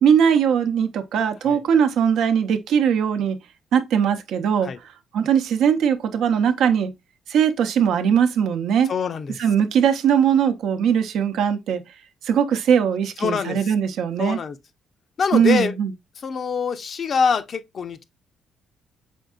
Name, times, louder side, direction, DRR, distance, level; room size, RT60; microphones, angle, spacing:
voice 1, 0.0-3.4 3.7-4.7 5.1-6.9 7.3-8.9 9.4-11.8 12.2-14.4 15.3-15.9, right 8 dB, 80° right, 0.6 m, -20 dB
voice 2, 8.9-9.4 13.2-13.7 14.2-14.6 15.2-15.7 16.2-18.0, left 6 dB, 50° left, 0.5 m, -24 dB
5.2 x 3.6 x 2.3 m
cardioid pair, 90°, 0 cm